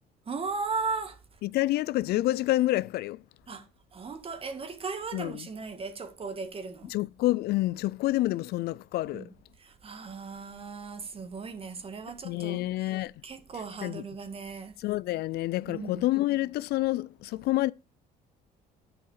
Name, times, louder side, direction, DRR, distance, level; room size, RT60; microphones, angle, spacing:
voice 1, 0.3-1.2 3.5-3.7 3.9-6.9 9.1-9.3 9.6-12.6 13.2-14.7 15.7-16.0, right 4 dB, 35° right, 2.0 m, -36 dB
voice 2, 1.4-3.2 5.1-5.5 6.9-9.3 12.2-13.1 13.8-14.0 14.8-17.7, left 17 dB, 70° left, 0.4 m, -28 dB
10.5 x 5.7 x 6.5 m
cardioid pair, 110°, 17 cm